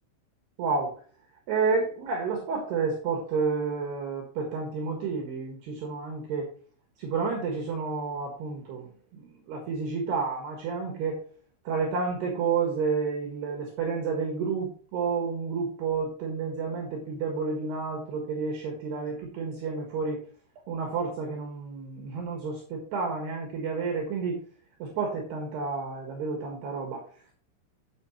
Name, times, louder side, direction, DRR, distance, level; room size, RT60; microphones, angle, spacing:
voice 1, 0.6-1.0 1.5-6.5 7.0-11.2 11.6-20.2 20.7-24.4 24.8-27.0, right 5 dB, 65° right, 2 dB, 3.1 m, -30 dB
10.5 x 7.7 x 3.0 m, 0.42 s
omnidirectional pair, 5.9 m